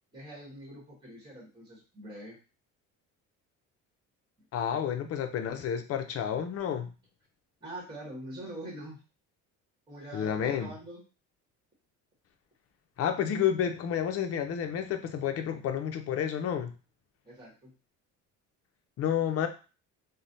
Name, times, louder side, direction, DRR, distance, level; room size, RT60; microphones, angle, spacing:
voice 1, 0.1-2.4 7.6-9.0 9.9-11.0 17.2-17.7, right 1 dB, 15° right, -3 dB, 1.2 m, -44 dB
voice 2, 4.5-6.9 10.1-10.7 13.0-16.7 19.0-19.5, left 9 dB, 50° left, 7 dB, 0.5 m, -30 dB
3.1 x 2.1 x 2.6 m, 0.32 s
cardioid pair, 125°, 32 cm